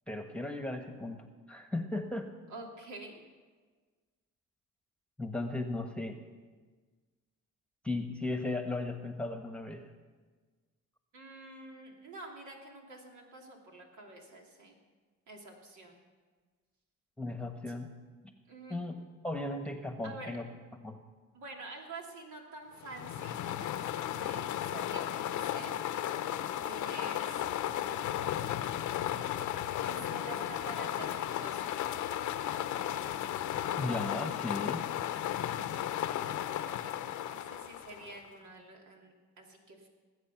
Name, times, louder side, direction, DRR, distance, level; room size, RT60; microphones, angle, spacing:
voice 1, 0.1-2.3 5.2-6.2 7.8-9.8 17.2-17.9 18.7-19.0 19.2-20.4 20.8-21.0 33.8-34.9, left 2 dB, 5° left, 5 dB, 1.3 m, -36 dB
voice 2, 2.5-3.2 11.1-14.8 15.3-16.0 18.5-18.8 20.0-20.3 21.3-25.7 26.5-27.5 29.8-31.8 37.3-39.9, right 2 dB, 75° right, 0 dB, 2.8 m, -48 dB
sound 1, 22.8-38.3, left 11 dB, 75° left, 0.8 m, -35 dB
19.5 x 8.1 x 6.0 m, 1.4 s
cardioid pair, 90°, 30 cm